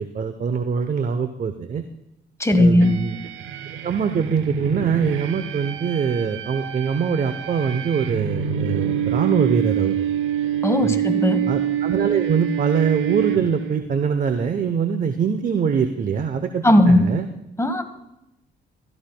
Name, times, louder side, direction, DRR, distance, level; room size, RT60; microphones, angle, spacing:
voice 1, 0.0-1.8 2.5-3.2 3.8-10.1 10.8-11.0 11.5-17.2, right 6 dB, 45° right, 8 dB, 0.7 m, -23 dB
voice 2, 2.4-2.9 10.6-11.4 16.6-17.1 17.6-17.8, left 1 dB, 15° left, 8 dB, 1.2 m, -16 dB
sound 1, 2.8-13.9, right 9 dB, 85° right, 0.7 m, -26 dB
15.5 x 13.5 x 2.2 m, 0.86 s
cardioid pair, 90°, 20 cm